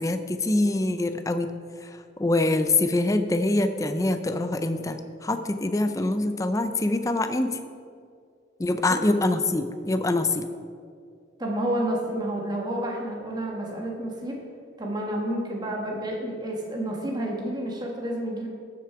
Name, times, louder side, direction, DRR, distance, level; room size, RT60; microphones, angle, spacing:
voice 1, 0.0-1.5 1.8-7.6 8.6-10.5, left 2 dB, 15° left, 9 dB, 0.4 m, -25 dB
voice 2, 11.4-14.4 14.8-18.5, right 1 dB, 20° right, -1 dB, 1.6 m, -30 dB
12.5 x 6.9 x 4.7 m, 2.3 s
head